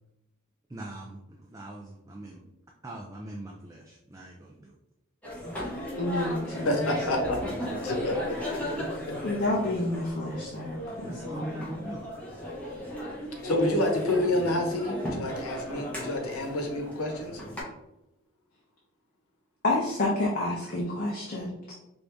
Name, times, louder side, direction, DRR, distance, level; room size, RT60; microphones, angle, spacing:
voice 1, 0.7-2.4 2.8-4.7 10.7-12.1, right 1 dB, 15° right, -1 dB, 0.4 m, -41 dB
sound 1, 5.2-17.6, left 1 dB, 5° left, 1.0 m, -36 dB
voice 2, 6.0-6.7 9.2-11.4 19.6-21.7, left 2 dB, 40° left, -4 dB, 0.7 m, -29 dB
voice 3, 6.6-8.2 13.4-17.4, left 1 dB, 85° left, 2 dB, 0.9 m, -28 dB
4.8 x 2.6 x 3.4 m, 0.89 s
head